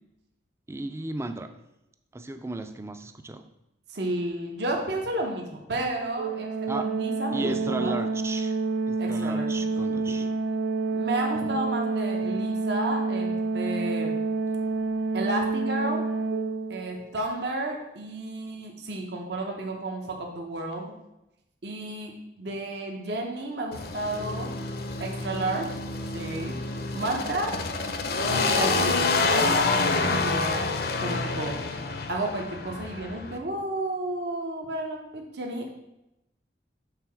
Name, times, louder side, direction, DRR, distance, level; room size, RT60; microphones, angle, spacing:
voice 1, 0.7-1.5 2.1-3.5 6.7-6.9 7.3-8.6 8.9-10.3 11.4-11.6, right 2 dB, 15° right, 9 dB, 0.4 m, -35 dB
voice 2, 3.9-8.0 9.0-9.5 9.9-10.3 10.9-14.1 15.1-16.0 16.7-20.9 21.6-24.6 25.0-25.8 26.1-26.6 26.9-27.6 28.2-30.6 31.0-31.6 32.1-35.7, right 1 dB, 65° right, 1 dB, 0.9 m, -32 dB
Organ, 6.2-17.0, right 3 dB, 85° right, 0.5 m, -28 dB
sound 1, 23.7-33.4, left 3 dB, 55° left, 0.6 m, -27 dB
6.8 x 3.7 x 5.8 m, 0.90 s
head